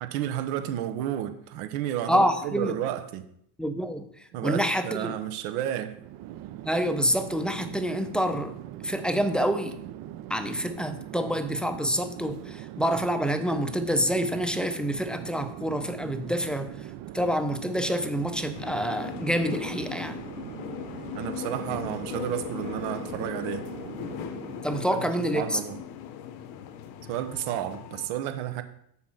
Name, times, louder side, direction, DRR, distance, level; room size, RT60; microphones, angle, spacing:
voice 1, 0.0-3.2 4.3-5.9 21.1-23.7 24.9-25.8 27.0-28.6, right 11 dB, 75° right, 9 dB, 1.1 m, -32 dB
voice 2, 2.1-2.7 3.6-4.1 4.4-5.2 6.6-8.5 8.8-9.8 10.3-16.7 17.1-20.2 24.6-25.6, equal, ahead, 8 dB, 0.5 m, -27 dB
Chatter / Fixed-wing aircraft airplane, 5.8-24.8, right 13 dB, 55° right, 0.6 m, -41 dB
sound 1, 18.5-28.1, left 9 dB, 75° left, 0.9 m, -38 dB
7.1 x 4.4 x 6.3 m, 0.70 s
supercardioid pair, 115°, 44 cm